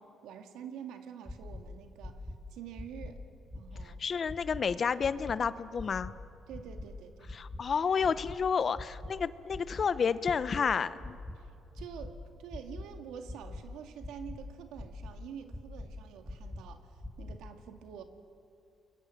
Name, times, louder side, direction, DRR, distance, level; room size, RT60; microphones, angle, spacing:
voice 1, 0.2-2.2 2.5-3.2 3.5-4.0 6.5-7.3 11.4-18.0, right 8 dB, 90° right, 6 dB, 1.9 m, -47 dB
sound 1, 1.2-1.6 2.0-2.3 2.7-3.1 3.5-3.8 4.2-4.6 5.0-5.3 5.7-6.1 6.5-6.8 7.2-7.6 8.0-8.3 8.7-9.1 9.5-9.8 10.2-10.6 11.0-11.3 11.7-12.1 12.5-12.8 13.2-13.6 14.0-14.4 14.7-15.1 15.5-15.9 16.2-16.6 17.0-17.3, left 2 dB, 5° left, 4.9 m, -42 dB
voice 2, 4.0-6.1 7.3-11.2, left 6 dB, 45° left, 15 dB, 0.9 m, -30 dB
29.0 x 22.0 x 7.6 m, 2.6 s
cardioid pair, 90°, 0 cm